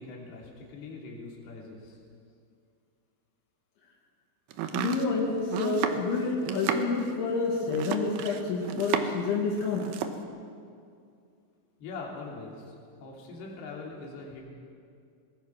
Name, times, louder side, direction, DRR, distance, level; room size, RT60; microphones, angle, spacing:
voice 1, 0.0-2.0 11.8-12.7 13.0-14.4, left 3 dB, 60° left, -2 dB, 4.9 m, -42 dB
Domestic sounds home sounds, 4.5-9.3 9.6-10.2, right 8 dB, 70° right, 2.6 m, -32 dB
voice 2, 4.7-9.8, left 4 dB, 85° left, -1 dB, 4.5 m, -29 dB
24.0 x 19.5 x 5.9 m, 2.4 s
omnidirectional pair, 5.2 m